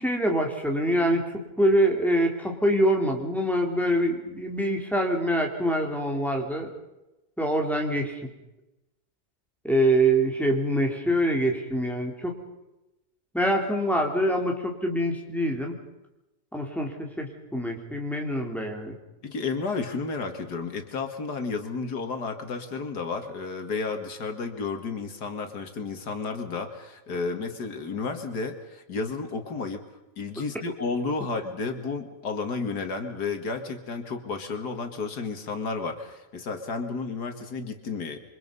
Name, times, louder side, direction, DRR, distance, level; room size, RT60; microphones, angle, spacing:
voice 1, 0.0-6.7 7.4-8.3 9.6-12.4 13.3-15.8 16.5-19.0, right 1 dB, ahead, 1 dB, 3.7 m, -25 dB
voice 2, 19.2-29.8 30.2-38.2, left 4 dB, 90° left, 6 dB, 2.6 m, -32 dB
27.5 x 24.5 x 5.5 m, 0.96 s
omnidirectional pair, 1.7 m